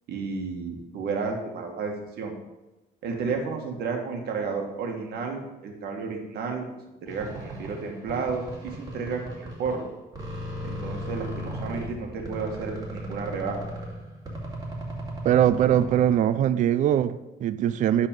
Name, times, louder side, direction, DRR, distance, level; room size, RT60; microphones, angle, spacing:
voice 1, 0.1-2.3 3.0-6.6 7.0-9.8 10.6-13.6, right 4 dB, 70° right, 2 dB, 1.7 m, -32 dB
sound 1, 7.1-9.9 10.1-16.2, right 1 dB, 20° right, 2.3 m, -36 dB
voice 2, 15.2-18.1, right 10 dB, 50° right, 14 dB, 0.4 m, -22 dB
10.5 x 4.1 x 5.3 m, 1.0 s
cardioid pair, 110°, 17 cm